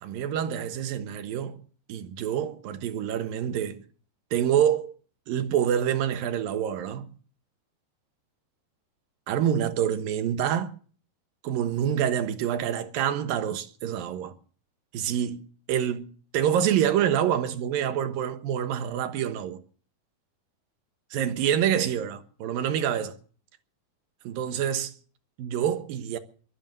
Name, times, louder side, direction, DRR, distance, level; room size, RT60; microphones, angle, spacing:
voice 1, 0.0-1.6 1.9-3.8 4.3-4.9 5.3-7.1 9.3-10.7 11.4-14.3 14.9-19.6 21.1-23.2 24.2-24.9 25.4-26.2, right 9 dB, 65° right, 2.7 m, -27 dB
22.0 x 9.1 x 6.6 m
omnidirectional pair, 4.8 m